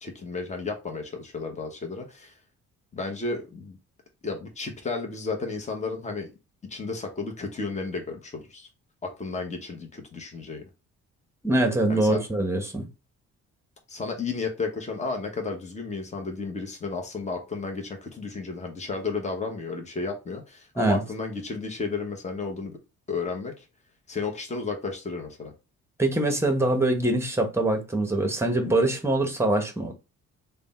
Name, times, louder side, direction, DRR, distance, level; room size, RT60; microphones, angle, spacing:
voice 1, 0.0-2.3 2.9-3.8 4.2-6.3 6.7-8.7 9.0-10.6 11.9-12.2 13.9-22.7 23.1-23.7 24.1-25.5, left 4 dB, 25° left, 1.0 m, -33 dB
voice 2, 11.4-12.9 20.8-21.0 26.0-29.9, right 2 dB, 10° right, 1.0 m, -24 dB
3.3 x 2.2 x 4.1 m
cardioid pair, 90°, 30 cm